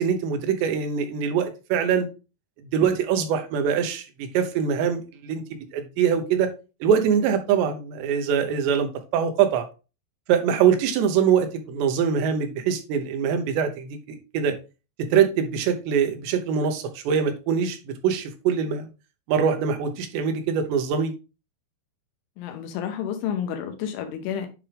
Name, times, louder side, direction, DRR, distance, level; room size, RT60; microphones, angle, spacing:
voice 1, 0.0-2.1 2.7-5.4 5.7-6.5 6.8-9.6 10.3-14.6 15.1-18.9 19.3-21.1, right 7 dB, 75° right, 3.0 m, -23 dB
voice 2, 22.4-24.5, left 9 dB, 85° left, 3.4 m, -30 dB
10.0 x 3.7 x 3.4 m
omnidirectional pair, 5.4 m